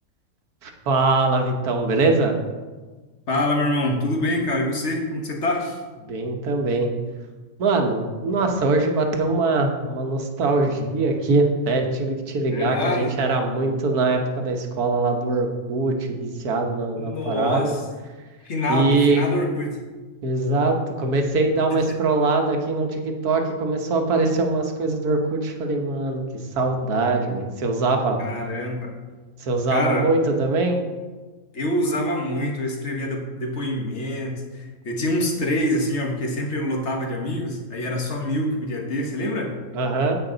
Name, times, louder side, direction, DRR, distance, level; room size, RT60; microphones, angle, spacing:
voice 1, 0.6-2.4 6.0-6.9 7.6-17.7 18.7-19.2 20.2-26.2 26.5-28.2 29.4-30.8 39.7-40.2, right 3 dB, 85° right, 3 dB, 1.6 m, -22 dB
voice 2, 3.3-5.8 12.5-13.1 17.0-17.8 18.4-19.8 28.2-28.9 29.7-30.1 31.5-39.5, left 1 dB, 50° left, 1 dB, 1.6 m, -25 dB
9.5 x 8.2 x 3.9 m, 1.3 s
omnidirectional pair, 1.6 m